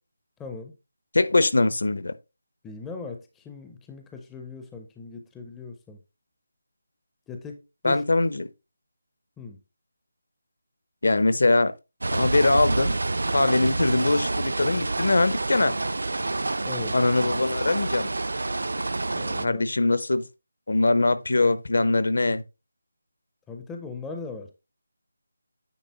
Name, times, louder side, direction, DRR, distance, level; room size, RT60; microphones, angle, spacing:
voice 1, 0.4-0.7 2.6-6.0 7.3-8.0 9.4-9.6 16.6-17.0 19.2-19.6 23.5-24.5, left 4 dB, 5° left, 0.4 m, -39 dB
voice 2, 1.1-2.1 7.8-8.5 11.0-11.7 12.1-13.0 13.3-15.8 16.9-18.1 19.4-20.2 20.7-22.4, left 2 dB, 65° left, 0.8 m, -22 dB
sound 1, 12.0-19.5, right 2 dB, 75° right, 0.5 m, -28 dB
9.4 x 3.9 x 4.0 m
figure-of-eight pair, 180°, 0 cm